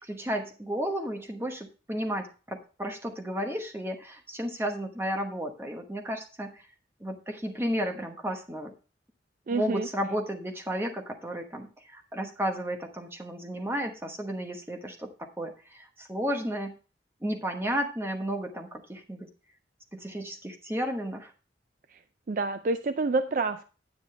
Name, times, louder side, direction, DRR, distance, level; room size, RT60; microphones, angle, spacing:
voice 1, 0.0-6.7 7.0-8.7 9.5-16.8 17.2-19.3 19.9-21.3, equal, 15° right, 3 dB, 1.1 m, -33 dB
voice 2, 9.5-9.9 21.9-22.0 22.3-23.7, right 3 dB, 45° right, 10 dB, 0.4 m, -28 dB
9.7 x 8.5 x 3.2 m, 0.35 s
head